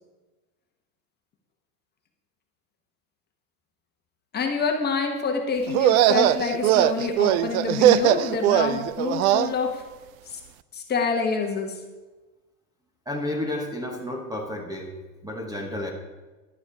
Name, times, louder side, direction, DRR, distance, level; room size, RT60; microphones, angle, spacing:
voice 1, 4.3-9.8 10.2-10.4 10.7-11.8, left 5 dB, 20° left, 2 dB, 1.2 m, -27 dB
sound 1, 5.7-9.5, right 13 dB, 65° right, 0.6 m, -20 dB
voice 2, 13.1-14.9 15.2-15.9, left 1 dB, 10° right, 2 dB, 1.1 m, -31 dB
11.5 x 9.4 x 4.8 m, 1.2 s
supercardioid pair, 145°, 44 cm